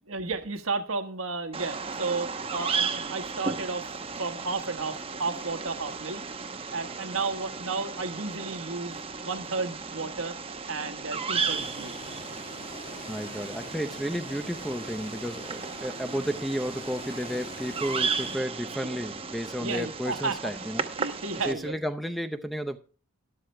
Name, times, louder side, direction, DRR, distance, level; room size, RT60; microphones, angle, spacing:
voice 1, 0.1-3.9 4.2-6.2 6.7-10.3 10.7-11.9 16.1-16.3 18.8-19.0 19.6-20.4 21.0-21.7, right 4 dB, 80° right, 1.4 m, -33 dB
Bird vocalization bird call bird song, 1.5-21.5, right 5 dB, 25° right, 0.9 m, -35 dB
sound 1, 11.4-18.4, left 2 dB, 35° left, 1.6 m, -45 dB
voice 2, 13.0-20.9 21.4-22.8, equal, ahead, 0.6 m, -32 dB
12.5 x 12.0 x 3.3 m
head